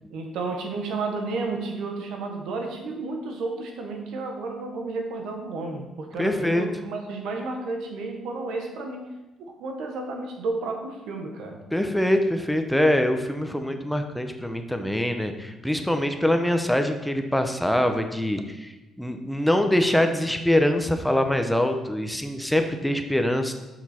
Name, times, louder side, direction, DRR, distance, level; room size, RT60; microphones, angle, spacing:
voice 1, 0.1-9.1 9.6-11.6, right 3 dB, 85° right, 3 dB, 1.2 m, -32 dB
voice 2, 6.2-6.7 11.7-18.7 19.0-23.5, left 1 dB, 5° left, 6 dB, 0.8 m, -24 dB
7.2 x 6.0 x 4.4 m, 1.0 s
cardioid pair, 90°, 0 cm